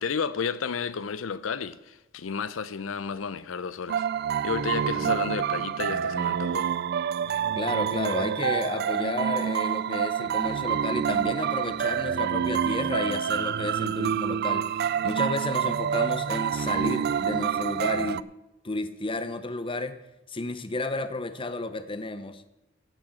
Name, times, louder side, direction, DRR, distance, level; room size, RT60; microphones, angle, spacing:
voice 1, 0.0-4.1 4.4-6.7, left 6 dB, 80° left, 0.5 m, -32 dB
sound 1, 3.9-18.2, right 8 dB, 55° right, 0.3 m, -27 dB
voice 2, 7.6-18.2 18.6-20.0 20.3-22.5, left 2 dB, 25° left, 0.7 m, -32 dB
14.5 x 6.2 x 7.7 m
head